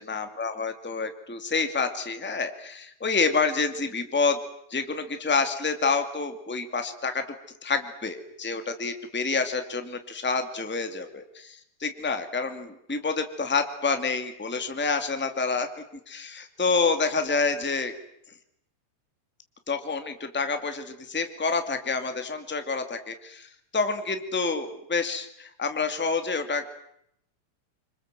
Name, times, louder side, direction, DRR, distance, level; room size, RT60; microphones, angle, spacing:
voice 1, 0.0-4.4 4.7-7.2 7.6-15.7 16.1-17.9 19.7-26.7, left 4 dB, 5° left, 7 dB, 1.5 m, -28 dB
29.0 x 26.0 x 7.7 m, 0.75 s
omnidirectional pair, 4.5 m